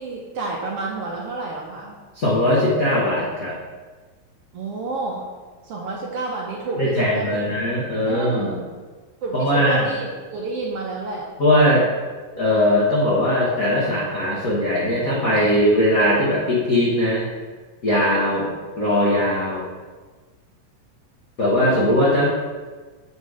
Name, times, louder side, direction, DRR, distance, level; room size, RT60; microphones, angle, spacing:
voice 1, 0.0-2.0 4.5-5.2 5.6-7.5 8.1-8.7 9.2-11.3, right 3 dB, 70° right, -2 dB, 1.5 m, -29 dB
voice 2, 2.1-3.5 6.8-8.6 9.3-9.9 11.4-11.8 12.4-17.2 17.8-18.5 18.8-19.6 21.4-22.3, left 1 dB, 60° left, -6 dB, 0.9 m, -19 dB
8.2 x 4.1 x 4.9 m, 1.4 s
omnidirectional pair, 3.4 m